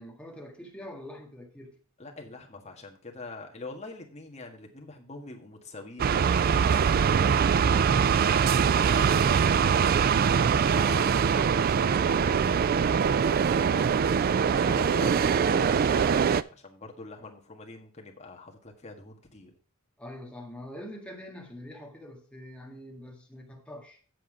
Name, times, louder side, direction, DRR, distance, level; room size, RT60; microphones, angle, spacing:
voice 1, 0.0-1.8 20.0-24.0, left 1 dB, 5° left, 1.8 m, -44 dB
voice 2, 2.0-6.5 8.7-14.1 14.5-19.6, left 2 dB, 30° left, 1.6 m, -44 dB
sound 1, 6.0-16.4, right 6 dB, 45° right, 0.3 m, -23 dB
7.9 x 7.3 x 5.0 m
head